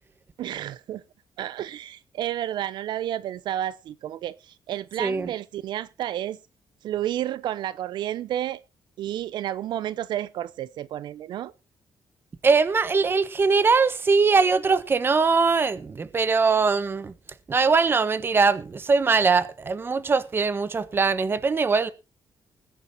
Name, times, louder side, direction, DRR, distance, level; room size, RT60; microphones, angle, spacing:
voice 1, 0.4-1.0 1.4-6.4 6.8-8.6 9.0-11.5, right 12 dB, 80° right, 0.6 m, -31 dB
voice 2, 5.0-5.3 12.4-17.1 17.5-21.9, right 4 dB, 30° right, 1.2 m, -21 dB
20.5 x 10.0 x 2.8 m
cardioid pair, 135°, 8 cm